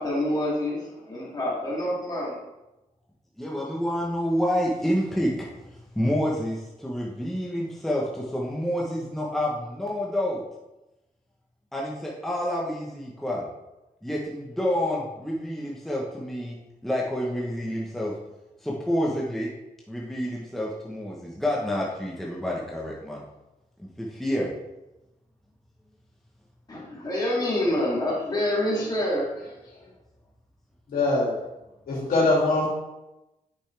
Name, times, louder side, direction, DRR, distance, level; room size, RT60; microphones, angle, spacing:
voice 1, 0.0-2.4 26.7-29.3, left 1 dB, 25° left, -6 dB, 2.7 m, -27 dB
voice 2, 3.4-5.5 5.9-10.4 11.7-13.5 14.0-16.6 16.8-18.1 18.6-19.5 19.9-23.2 23.8-24.5, equal, ahead, -4 dB, 1.0 m, -28 dB
voice 3, 30.9-31.3 31.9-32.7, left 2 dB, 75° left, -4 dB, 2.9 m, -22 dB
8.8 x 5.5 x 3.4 m, 0.98 s
wide cardioid pair, 125°, 15 cm